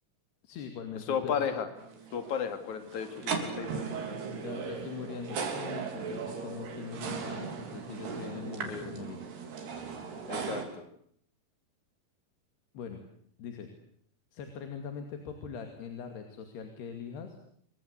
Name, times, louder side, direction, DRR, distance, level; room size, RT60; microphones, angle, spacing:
voice 1, 0.4-1.5 4.4-9.2 12.7-13.0 13.4-13.7 14.3-17.4, left 6 dB, 90° left, 6 dB, 4.5 m, -42 dB
voice 2, 1.1-1.7 2.1-3.8 8.7-8.9 10.3-10.8, left 7 dB, 50° left, 8 dB, 3.8 m, -33 dB
sound 1, 1.8-10.6, right 5 dB, 85° right, 5.5 m, -37 dB
28.5 x 23.5 x 8.3 m, 0.65 s
omnidirectional pair, 4.5 m